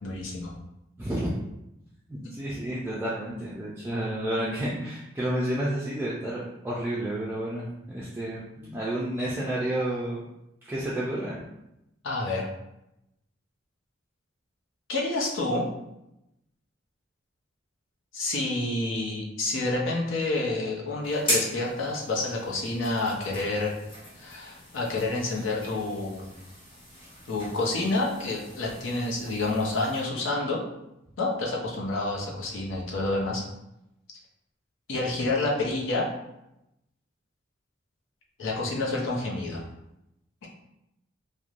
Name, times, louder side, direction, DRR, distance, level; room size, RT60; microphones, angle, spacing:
voice 1, 0.0-0.5 12.0-12.5 14.9-15.7 18.1-23.7 24.2-26.3 27.3-30.6 31.2-33.4 34.9-36.1 38.4-39.6, left 2 dB, 85° left, -2 dB, 0.6 m, -28 dB
voice 2, 1.0-1.3 2.1-10.3 10.7-11.4, right 1 dB, 10° right, -7 dB, 0.3 m, -30 dB
sound 1, 21.0-30.0, left 1 dB, 30° left, 0.9 m, -38 dB
3.0 x 2.1 x 2.4 m, 0.87 s
head